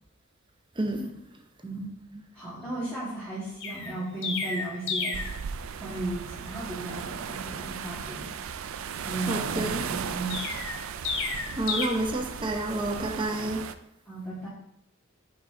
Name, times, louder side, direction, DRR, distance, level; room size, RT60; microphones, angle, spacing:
voice 1, 0.8-1.1 9.3-9.8 11.5-13.7, right 1 dB, 25° right, 0.7 m, -29 dB
voice 2, 1.6-1.9 2.3-5.2 5.8-8.3 9.0-10.4 14.1-14.5, right 2 dB, 10° left, 1.8 m, -35 dB
Chirp tweet, 3.6-5.4 10.3-11.9, left 4 dB, 60° left, 0.8 m, -31 dB
sound 1, 5.1-13.7, right 7 dB, 70° right, 0.4 m, -36 dB
5.3 x 5.0 x 3.7 m
head